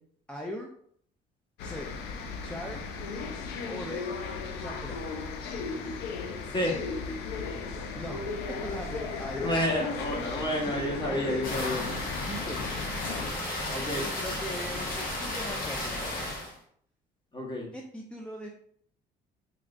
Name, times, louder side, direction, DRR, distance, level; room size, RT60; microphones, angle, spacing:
voice 1, 0.3-0.7 1.6-1.9 2.4-2.8 3.7-4.1 4.5-5.1 7.9-8.2 8.6-9.5 11.1-11.4 12.2-12.6 13.9-16.0 17.7-18.5, equal, 5° left, -1 dB, 0.4 m, -39 dB
sound 1, 1.6-13.3, left 4 dB, 90° left, 0.5 m, -36 dB
voice 2, 9.4-11.9 13.7-14.1 17.3-17.7, equal, 25° left, -2 dB, 1.2 m, -30 dB
sound 2, 11.4-16.5, left 1 dB, 60° left, 1.1 m, -34 dB
3.5 x 3.1 x 2.5 m, 0.64 s
cardioid pair, 110°, 17 cm